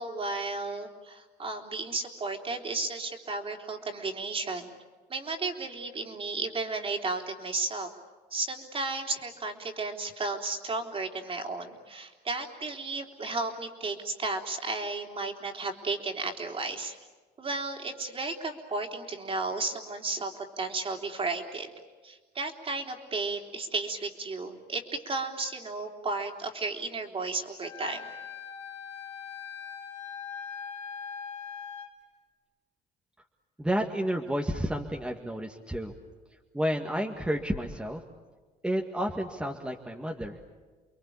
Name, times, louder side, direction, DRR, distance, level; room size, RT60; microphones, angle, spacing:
voice 1, 0.0-4.7 5.1-7.9 8.3-17.0 17.4-21.7 22.0-28.0, right 3 dB, 35° right, 3 dB, 3.6 m, -33 dB
Wind instrument woodwind instrument, 27.6-31.9, left 7 dB, 40° left, 4.3 m, -41 dB
voice 2, 33.6-35.9 36.5-38.0 38.6-40.4, equal, 5° right, 1 dB, 2.0 m, -31 dB
29.5 x 22.5 x 8.6 m, 1.4 s
cardioid pair, 110°, 17 cm